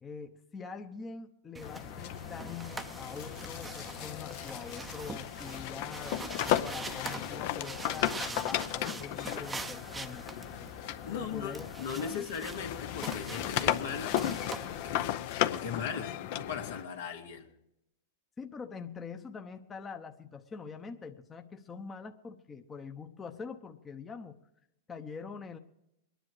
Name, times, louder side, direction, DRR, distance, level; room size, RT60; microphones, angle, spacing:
voice 1, 0.0-10.2 11.1-12.2 18.4-24.4 24.9-25.6, left 5 dB, 20° left, 5 dB, 0.8 m, -44 dB
sound 1, 1.5-15.1, right 3 dB, 10° right, 0.7 m, -44 dB
sound 2, 1.6-12.2 12.5-16.8, left 12 dB, 55° left, 0.7 m, -35 dB
voice 2, 11.0-17.5, left 7 dB, 80° left, 2 dB, 2.2 m, -39 dB
22.5 x 10.0 x 4.8 m, 0.83 s
hypercardioid pair, 125°, 0 cm